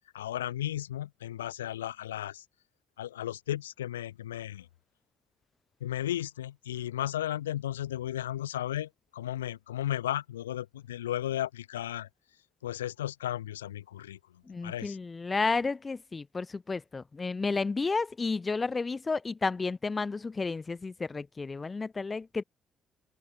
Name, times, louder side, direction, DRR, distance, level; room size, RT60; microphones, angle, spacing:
voice 1, 0.1-2.4 3.0-4.7 5.8-12.1 12.6-14.2 14.6-15.0, left 12 dB, 80° left, 1.6 m, -34 dB
voice 2, 14.5-22.4, left 4 dB, 30° left, 1.4 m, -32 dB
open air
figure-of-eight pair, 45°, 0 cm